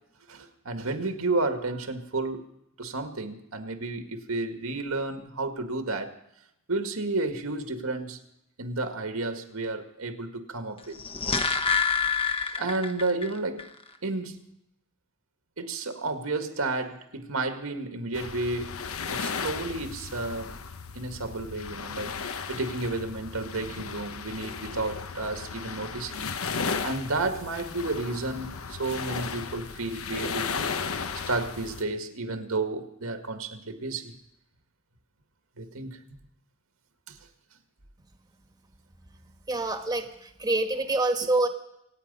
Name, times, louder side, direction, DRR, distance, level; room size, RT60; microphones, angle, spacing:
voice 1, 0.3-2.4 2.8-6.1 6.7-8.2 8.6-11.0 12.6-13.7 14.0-14.4 15.6-18.8 19.1-20.5 20.9-26.3 26.8-31.0 31.3-34.1 35.6-36.0 37.1-37.2, right 2 dB, 85° right, 1.9 m, -32 dB
sound 1, 10.8-13.3 13.6-13.7, left 5 dB, 25° left, 1.0 m, -27 dB
sound 2, 18.1-31.8, left 5 dB, 85° left, 1.0 m, -35 dB
voice 2, 39.5-41.5, right 2 dB, 20° right, 1.3 m, -26 dB
26.0 x 9.3 x 5.5 m
head